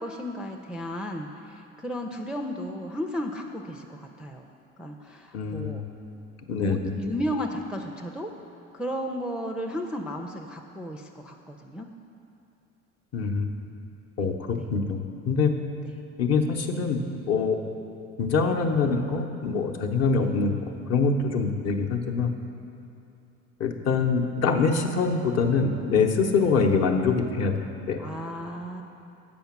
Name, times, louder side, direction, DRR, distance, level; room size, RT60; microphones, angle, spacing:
voice 1, 0.0-4.5 4.8-5.8 6.6-8.3 8.7-11.9 14.5-14.7 15.8-16.0 20.2-20.3 26.4-26.5 28.0-28.8, equal, 5° right, 1 dB, 0.4 m, -34 dB
voice 2, 5.3-5.8 6.5-6.9 13.1-13.5 14.2-15.5 16.2-17.6 18.2-20.5 20.9-22.3 23.6-27.5 27.9-28.0, left 4 dB, 45° left, 3 dB, 0.8 m, -24 dB
7.1 x 5.1 x 5.9 m, 2.7 s
supercardioid pair, 75°, 36 cm